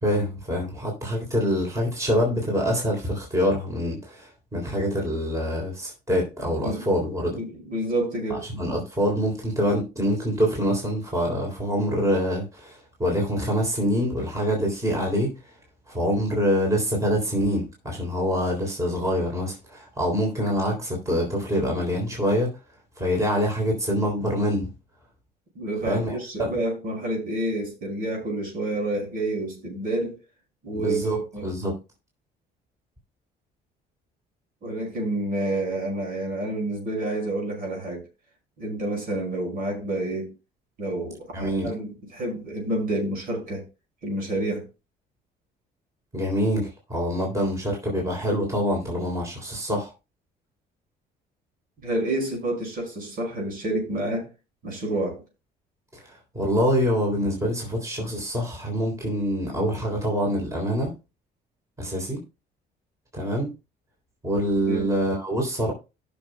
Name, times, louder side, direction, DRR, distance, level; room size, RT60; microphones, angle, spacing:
voice 1, 0.0-7.4 8.3-15.6 15.9-22.6 23.0-24.7 25.8-26.5 30.7-31.8 41.3-41.7 46.1-49.9 55.9-60.9 61.8-62.2 63.1-63.5 64.2-65.7, equal, 20° right, 3.5 m, -25 dB
voice 2, 7.3-8.4 25.5-30.2 30.6-31.5 34.6-38.1 38.6-40.3 40.8-43.6 44.0-44.7 51.8-54.3 54.6-55.2 64.6-64.9, right 1 dB, 60° right, 5.8 m, -29 dB
17.5 x 6.4 x 2.3 m
cardioid pair, 110°, 17 cm